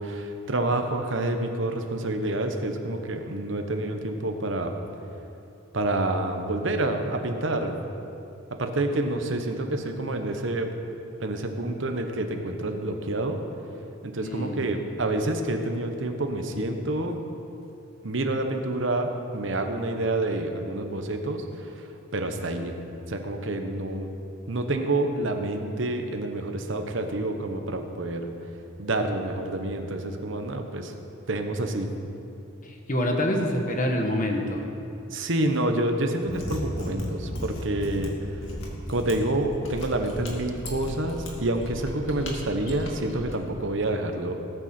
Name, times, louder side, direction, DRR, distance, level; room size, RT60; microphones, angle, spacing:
voice 1, 0.0-4.7 5.7-7.7 8.6-10.7 11.2-13.4 14.0-17.2 18.0-21.8 22.1-22.7 23.1-24.1 24.5-28.3 28.8-30.9 31.3-31.9 35.1-38.1 38.9-44.3, right 2 dB, 65° right, 5 dB, 1.1 m, -28 dB
voice 2, 8.9-9.3 14.2-14.7 32.6-34.6, left 1 dB, 40° left, 2 dB, 1.4 m, -27 dB
Mechanisms, 36.2-43.3, left 1 dB, 70° left, 2.2 m, -36 dB
19.0 x 9.3 x 4.4 m, 2.8 s
head